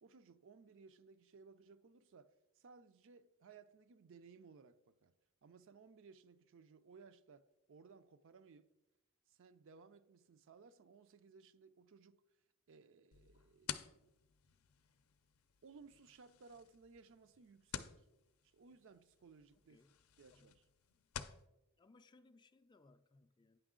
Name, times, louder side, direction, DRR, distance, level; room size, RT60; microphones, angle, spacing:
voice 1, 0.0-5.1 5.4-8.7 9.3-12.2 12.7-13.8 15.6-18.0 18.4-19.8 20.2-20.7, right 5 dB, 60° right, 0.4 m, -61 dB
sound 1, 13.1-21.4, left 9 dB, 75° left, 0.5 m, -52 dB
voice 2, 21.8-23.6, left 3 dB, 20° left, 0.3 m, -67 dB
9.0 x 6.1 x 3.7 m
head